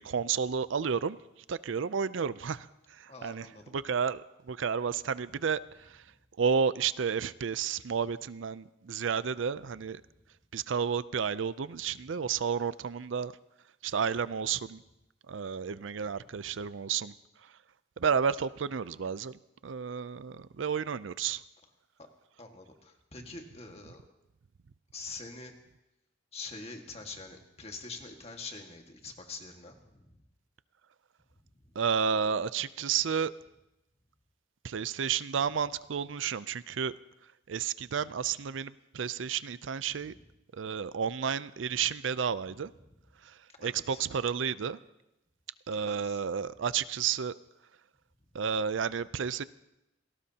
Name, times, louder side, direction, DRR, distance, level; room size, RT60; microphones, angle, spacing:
voice 1, 0.0-10.0 10.5-13.3 13.8-14.8 15.3-17.6 18.0-21.4 31.7-33.3 34.6-40.1 40.5-42.7 43.2-44.8 45.7-47.3 48.3-49.4, right 6 dB, 75° right, 16 dB, 0.5 m, -32 dB
voice 2, 3.1-3.7 22.0-22.1 22.4-24.0 24.9-25.5 26.3-30.1 40.0-40.1 43.5-44.0 45.8-46.2, left 3 dB, 35° left, 3 dB, 1.8 m, -45 dB
27.0 x 18.5 x 2.9 m, 0.91 s
head